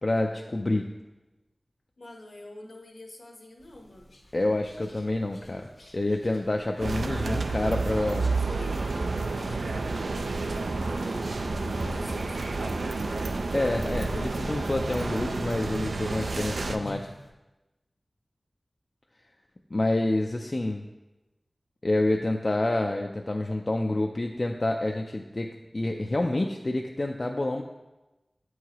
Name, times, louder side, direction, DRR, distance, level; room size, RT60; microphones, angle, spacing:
voice 1, 0.0-0.9 4.3-8.3 13.5-17.1 19.7-20.8 21.8-27.6, left 2 dB, 45° left, 2 dB, 0.3 m, -28 dB
voice 2, 2.0-4.1 8.3-12.6, left 1 dB, 70° left, 1 dB, 0.9 m, -46 dB
sound 1, 3.6-17.3, left 1 dB, 85° left, 1.1 m, -51 dB
sound 2, 6.8-16.8, right 3 dB, 85° right, 0.3 m, -30 dB
7.9 x 4.7 x 2.9 m, 1.1 s
wide cardioid pair, 75°, 0 cm